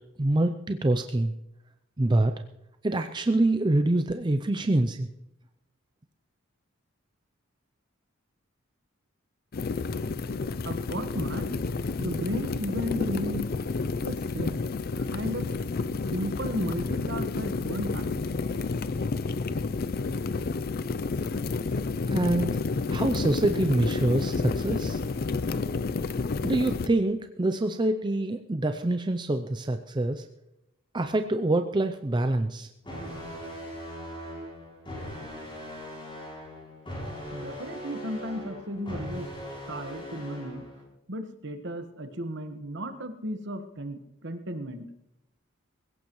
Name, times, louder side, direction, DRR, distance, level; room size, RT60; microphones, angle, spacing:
voice 1, 0.2-1.3 2.0-2.3 2.8-5.1 22.1-22.5 22.9-25.0 26.4-30.3 30.9-32.7, right 2 dB, 20° right, 7 dB, 0.5 m, -25 dB
sound 1, 9.5-26.9, left 4 dB, 45° left, 0.5 m, -30 dB
voice 2, 10.6-11.5 12.0-13.5 14.0-14.5 15.0-15.5 15.8-18.3 37.3-39.3 39.7-40.6 41.1-44.8, equal, 60° right, 7 dB, 1.4 m, -34 dB
sound 2, 32.8-40.8, equal, 25° left, 7.3 m, -39 dB
20.0 x 17.0 x 3.1 m, 0.86 s
head